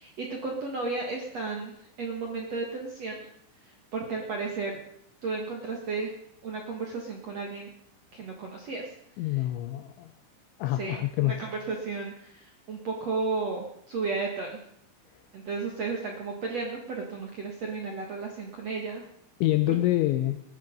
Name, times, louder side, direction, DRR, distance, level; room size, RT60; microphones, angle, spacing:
voice 1, 0.0-3.2 3.6-4.8 5.2-6.1 6.4-7.7 8.1-8.9 9.3-9.4 10.7-14.6 15.3-19.0 19.7-19.8, right 4 dB, 60° right, 1 dB, 1.7 m, -33 dB
voice 2, 9.2-10.1 10.6-11.4 19.4-20.4, left 15 dB, 80° left, 8 dB, 2.8 m, -26 dB
19.0 x 13.5 x 5.3 m, 0.73 s
omnidirectional pair, 5.9 m